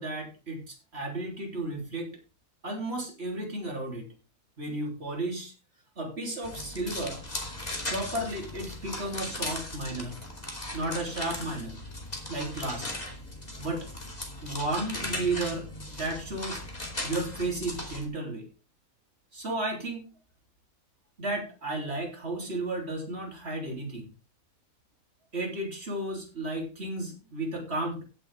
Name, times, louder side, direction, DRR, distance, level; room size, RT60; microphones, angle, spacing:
voice 1, 0.0-2.1 2.6-4.1 4.6-5.5 6.0-7.2 7.9-10.2 10.7-11.8 12.3-12.9 13.6-13.9 14.4-16.6 17.0-18.5 19.3-20.1 21.2-24.1 25.3-28.0, right 2 dB, 45° right, 1 dB, 3.8 m, -33 dB
sound 1, 6.4-18.1, left 1 dB, 30° left, 3.0 m, -38 dB
15.5 x 8.1 x 3.6 m, 0.30 s
omnidirectional pair, 1.5 m